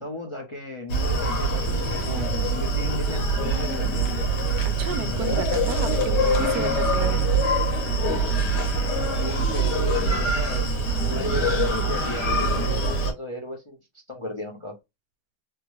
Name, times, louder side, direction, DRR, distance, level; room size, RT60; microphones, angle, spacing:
voice 1, 0.0-4.3 5.0-5.5 9.0-13.8 14.1-14.8, left 2 dB, 45° left, 0.3 m, -35 dB
Screaming, 0.9-13.1, right 2 dB, 90° left, 1.6 m, -24 dB
voice 2, 2.2-2.5 4.8-7.4 10.8-11.2, right 8 dB, 70° right, 1.1 m, -34 dB
3.6 x 2.1 x 3.0 m
omnidirectional pair, 1.8 m